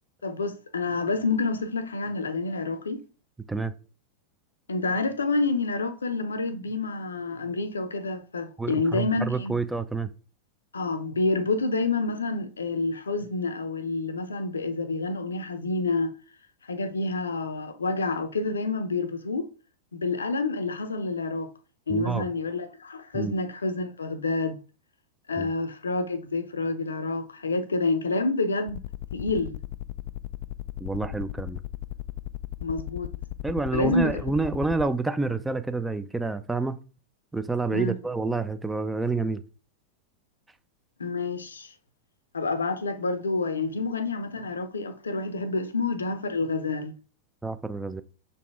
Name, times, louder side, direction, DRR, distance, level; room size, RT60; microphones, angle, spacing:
voice 1, 0.2-3.0 4.7-9.5 10.7-16.1 16.7-19.5 19.9-21.5 21.9-24.6 25.3-28.8 29.1-29.6 32.6-33.1 33.7-34.2 37.7-38.0 41.0-41.7 42.3-46.9, left 3 dB, 75° left, 0.7 m, -28 dB
voice 2, 8.6-10.1 21.9-22.3 23.1-23.3 25.4-25.5 30.8-31.6 33.4-36.8 37.3-39.4 47.4-48.0, right 3 dB, 5° right, 0.5 m, -28 dB
sound 1, 28.7-34.9, left 16 dB, 45° left, 0.3 m, -35 dB
6.4 x 4.1 x 3.5 m
figure-of-eight pair, 90°, 0 cm